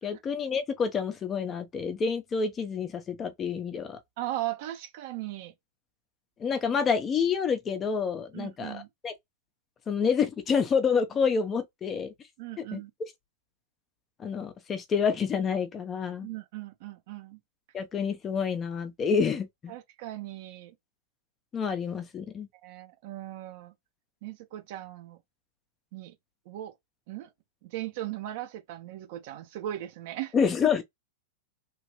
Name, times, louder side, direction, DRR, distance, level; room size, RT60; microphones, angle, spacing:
voice 1, 0.0-4.0 6.4-9.1 9.9-12.1 12.7-12.8 14.2-16.3 17.7-19.7 21.5-22.5 30.3-30.8, left 6 dB, 25° left, 0.7 m, -28 dB
voice 2, 4.2-5.5 8.3-8.9 12.4-12.9 16.2-17.4 19.7-20.7 22.6-23.7 24.2-25.2 25.9-26.2 26.4-26.7 27.1-27.3 27.6-30.3, right 14 dB, 55° right, 1.0 m, -38 dB
3.1 x 2.5 x 3.0 m
hypercardioid pair, 130°, 0 cm